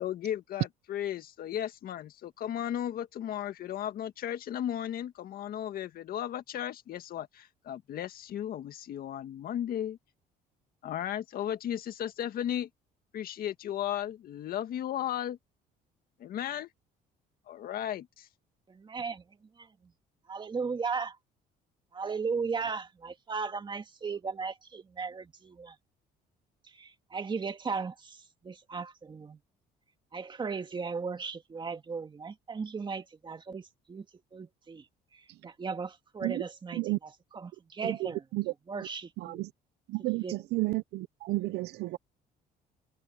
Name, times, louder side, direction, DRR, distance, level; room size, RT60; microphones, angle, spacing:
voice 1, 0.0-10.0 10.8-12.7 13.1-15.4 16.2-16.7 17.5-18.3, left 11 dB, 60° left, 1.8 m, -35 dB
voice 2, 18.7-19.2 19.6-19.9 20.3-21.2 21.9-25.8 26.6-29.4 30.1-34.1 34.3-34.9 35.1-38.3 38.7-39.5 40.0-40.4, right 5 dB, 30° right, 2.2 m, -37 dB
voice 3, 39.9-40.2 40.5-42.0, right 20 dB, 80° right, 0.9 m, -31 dB
cardioid pair, 110°, 17 cm